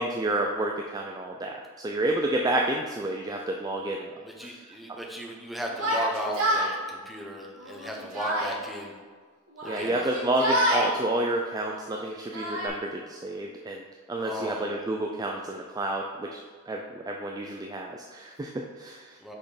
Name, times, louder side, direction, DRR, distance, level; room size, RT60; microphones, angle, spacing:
voice 1, 0.0-4.1 4.4-4.6 4.9-5.0 9.6-13.8 14.1-19.2, right 1 dB, 20° right, 1 dB, 0.3 m, -30 dB
voice 2, 4.2-8.9 9.6-10.0 14.2-14.8 19.2-19.3, equal, ahead, -1 dB, 0.9 m, -35 dB
Yell, 5.7-6.7 7.6-8.5 9.5-10.9 11.8-12.7, equal, 70° right, 1.7 m, -27 dB
5.8 x 4.3 x 4.9 m, 1.5 s
head